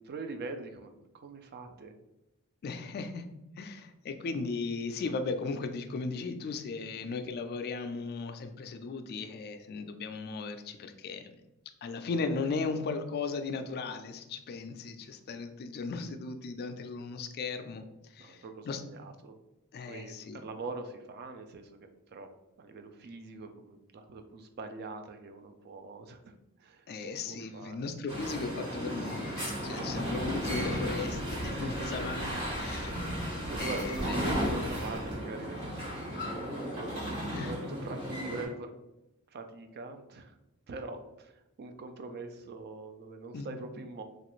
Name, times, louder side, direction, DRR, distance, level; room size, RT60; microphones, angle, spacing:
voice 1, 0.0-2.0 18.2-19.3 19.9-22.3 22.6-26.3 26.6-26.9 27.3-27.9 31.6-32.7 33.0-36.7 37.3-38.7 39.3-40.4 40.7-44.0, right 3 dB, 45° right, 7 dB, 0.4 m, -43 dB
voice 2, 2.6-3.2 3.6-11.3 11.8-17.8 18.1-18.8 19.7-20.4 26.9-33.0 33.6-34.2 37.3-37.5 43.3-43.5, left 4 dB, 45° left, 7 dB, 0.3 m, -36 dB
sound 1, 28.1-38.5, equal, 25° right, 0.9 m, -35 dB
sound 2, 29.9-35.2, equal, 65° right, 1.0 m, -40 dB
3.0 x 2.4 x 3.0 m, 0.94 s
head